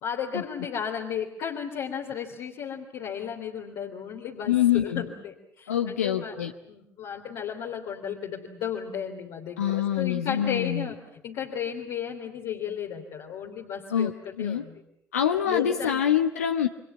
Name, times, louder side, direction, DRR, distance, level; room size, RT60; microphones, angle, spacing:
voice 1, 0.0-6.4 6.7-14.8 15.4-16.0, left 8 dB, 60° left, 0 dB, 3.3 m, -34 dB
voice 2, 4.5-5.0 5.7-6.5 9.6-10.9 13.9-14.1 14.4-14.6 15.1-16.7, left 10 dB, 80° left, 5 dB, 1.0 m, -25 dB
29.0 x 25.0 x 7.3 m, 0.79 s
figure-of-eight pair, 45°, 8 cm